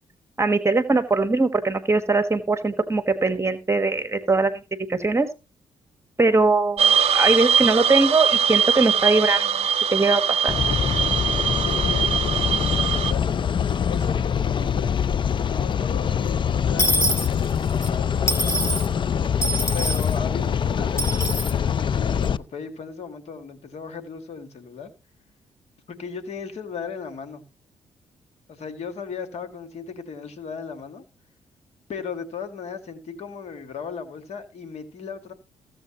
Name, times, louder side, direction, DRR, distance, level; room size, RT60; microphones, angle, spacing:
voice 1, 0.4-4.6 4.9-5.3 6.2-10.5, right 3 dB, 25° right, 1.3 m, -21 dB
sound 1, 6.8-13.1, right 7 dB, 60° right, 0.7 m, -22 dB
sound 2, 10.5-22.4, left 7 dB, 45° left, 0.5 m, -24 dB
voice 2, 11.6-13.2 13.9-15.0 15.4-18.6 19.7-24.9 25.9-27.4 28.5-31.0 31.9-35.3, left 5 dB, 65° left, 1.9 m, -36 dB
Dishes pots and pans / Coin (dropping), 16.8-17.9 18.3-18.9 19.4-20.1 21.0-21.5, equal, 25° left, 2.4 m, -25 dB
15.5 x 7.7 x 2.9 m
supercardioid pair, 50°, 12 cm